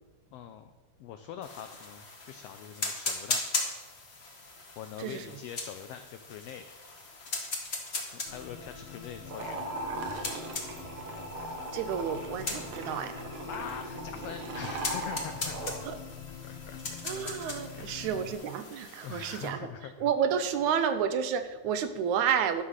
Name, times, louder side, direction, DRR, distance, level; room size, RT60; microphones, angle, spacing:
voice 1, 0.3-0.7 1.0-3.4 4.8-6.7 8.0-9.6 13.5-15.8 16.4-16.8 17.7-18.3 19.0-20.1, left 9 dB, 85° left, 8 dB, 1.4 m, -43 dB
sound 1, 1.4-19.5, left 3 dB, 40° left, 0.9 m, -39 dB
sound 2, 8.3-18.4, left 6 dB, 70° left, 1.6 m, -45 dB
sound 3, 9.2-15.8, right 2 dB, 55° right, 1.7 m, -39 dB
voice 2, 11.7-13.1 15.9-16.0 17.0-19.7 20.0-22.6, right 8 dB, 80° right, 10 dB, 2.1 m, -30 dB
11.5 x 5.6 x 6.4 m, 1.2 s
omnidirectional pair, 3.4 m